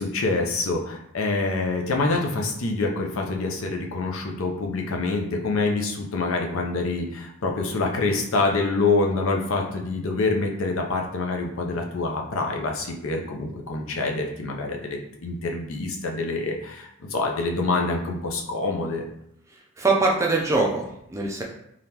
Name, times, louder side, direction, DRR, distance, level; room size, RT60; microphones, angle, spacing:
voice 1, 0.0-19.0, left 3 dB, 65° left, 1 dB, 0.5 m, -26 dB
voice 2, 19.8-21.4, right 3 dB, 15° right, -1 dB, 0.4 m, -23 dB
3.5 x 2.4 x 2.8 m, 0.76 s
head